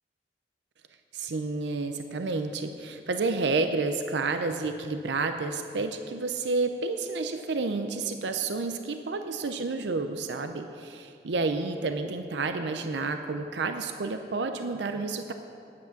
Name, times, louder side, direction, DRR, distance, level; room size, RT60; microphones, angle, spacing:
voice 1, 1.1-15.3, right 3 dB, 85° right, 7 dB, 0.6 m, -30 dB
10.5 x 8.4 x 7.0 m, 2.5 s
head